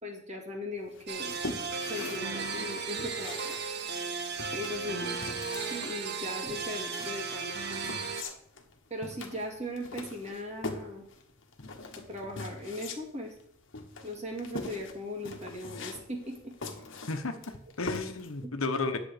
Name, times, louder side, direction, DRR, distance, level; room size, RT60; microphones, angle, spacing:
voice 1, 0.0-1.4 1.9-3.5 4.5-5.2 5.7-8.0 8.9-11.0 12.0-13.3 14.0-16.5 18.4-18.5, left 1 dB, 35° right, 0 dB, 2.2 m, -39 dB
sound 1, 0.9-18.4, left 3 dB, 60° left, 1.3 m, -42 dB
sound 2, 1.1-8.2, right 5 dB, 55° right, 1.0 m, -35 dB
voice 2, 17.1-19.0, left 3 dB, 75° left, 7 dB, 1.1 m, -33 dB
10.0 x 7.0 x 5.0 m, 0.71 s
head